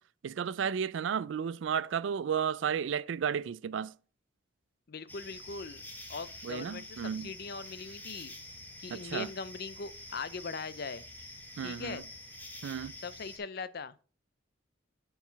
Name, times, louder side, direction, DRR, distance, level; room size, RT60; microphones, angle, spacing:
voice 1, 0.2-3.9 6.4-7.3 8.9-9.3 11.6-12.0 12.6-12.9, right 7 dB, 75° right, 0.3 m, -33 dB
voice 2, 4.9-5.8 6.1-8.3 8.8-11.0 11.6-12.1 13.0-13.9, left 4 dB, 55° left, 0.5 m, -40 dB
sound 1, 5.1-13.4, left 1 dB, 10° left, 1.2 m, -47 dB
7.1 x 4.7 x 5.6 m
head